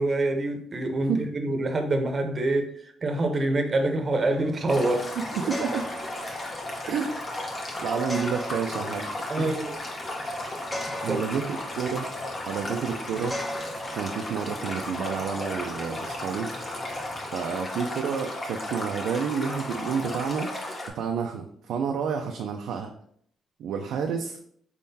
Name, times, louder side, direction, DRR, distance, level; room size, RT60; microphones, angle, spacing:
voice 1, 0.0-2.7 3.0-5.1 7.8-7.9 9.3-9.8 11.1-11.2, right 2 dB, 35° right, 5 dB, 0.7 m, -26 dB
sound 1, 4.1-17.3, equal, 15° left, 0.7 m, -41 dB
Stream, 4.7-20.9, left 1 dB, 40° left, 1.0 m, -35 dB
voice 2, 5.1-5.9 6.9-7.2 7.8-9.1 9.4-9.6 10.6-10.7 11.0-12.1 12.5-13.4 13.9-16.5 17.3-20.5 20.9-22.9 23.6-24.4, right 6 dB, 80° right, 3 dB, 0.4 m, -29 dB
4.2 x 3.7 x 2.7 m, 0.66 s
cardioid pair, 90°, 0 cm